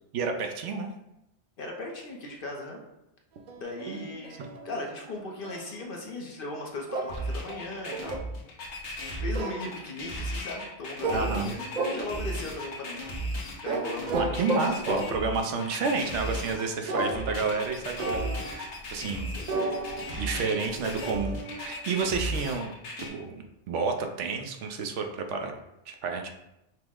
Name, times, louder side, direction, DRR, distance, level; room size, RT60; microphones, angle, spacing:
voice 1, 0.1-0.9 3.9-4.1 11.1-11.5 14.1-19.3 20.1-22.7 23.0-25.5 25.9-26.3, right 4 dB, 80° right, 4 dB, 0.9 m, -30 dB
voice 2, 1.6-2.8 3.6-8.2 9.0-13.0 13.6-14.2 19.1-19.7, left 2 dB, 55° left, 1 dB, 0.8 m, -38 dB
sound 1, 3.5-5.7 6.9-8.3 9.3-9.8 11.0-11.5 11.7-12.5 13.7-15.4 16.9-17.7 18.0-18.6 19.5-22.1, right 2 dB, 60° right, 0.5 m, -34 dB
sound 2, 7.1-23.1, equal, 75° left, 1.2 m, -36 dB
5.7 x 2.1 x 3.6 m, 0.89 s
omnidirectional pair, 1.2 m